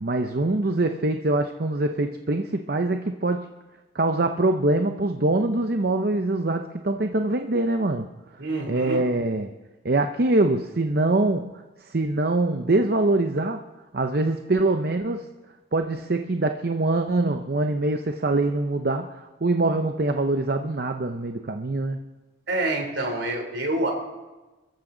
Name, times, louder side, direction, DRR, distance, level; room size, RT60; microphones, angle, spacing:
voice 1, 0.0-3.5 3.9-8.1 8.7-9.5 9.8-11.5 11.9-13.6 13.9-15.3 15.7-22.0, right 2 dB, 50° right, 6 dB, 0.7 m, -24 dB
voice 2, 8.4-9.0 22.5-23.9, right 2 dB, 70° right, 3 dB, 3.3 m, -27 dB
23.0 x 14.5 x 3.9 m, 1.1 s
head